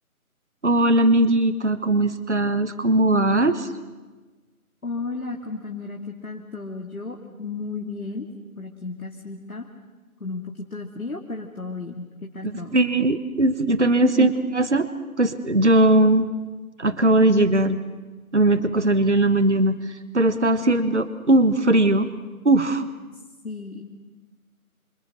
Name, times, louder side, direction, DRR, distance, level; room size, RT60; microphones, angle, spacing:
voice 1, 0.6-3.7 12.4-14.9 15.2-16.3 16.8-17.8 18.3-19.7 20.1-22.1 22.4-22.8, right 1 dB, 50° right, 12 dB, 1.3 m, -19 dB
voice 2, 4.8-8.3 8.6-9.7 10.2-12.8 14.0-14.3 23.4-23.8, left 3 dB, 70° left, 1 dB, 2.5 m, -33 dB
28.5 x 27.0 x 6.6 m, 1.3 s
figure-of-eight pair, 175°, 44 cm